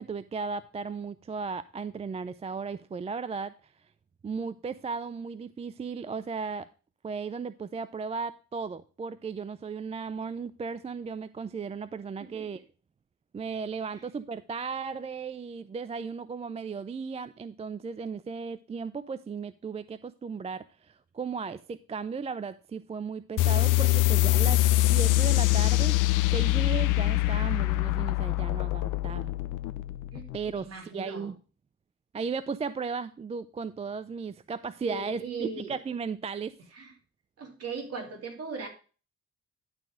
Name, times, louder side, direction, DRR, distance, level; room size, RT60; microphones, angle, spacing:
voice 1, 0.0-3.5 4.2-6.7 7.0-12.6 13.3-24.6 24.9-26.1 26.3-29.3 30.3-31.4 32.1-36.5, right 5 dB, 20° right, 14 dB, 0.4 m, -35 dB
sound 1, 23.4-30.5, left 19 dB, 90° left, 0.6 m, -24 dB
voice 2, 30.5-31.3 34.9-35.7 36.8-36.9 37.4-38.7, right 4 dB, 55° right, 2 dB, 2.7 m, -38 dB
11.5 x 4.0 x 5.0 m, 0.36 s
cardioid pair, 90°, 30 cm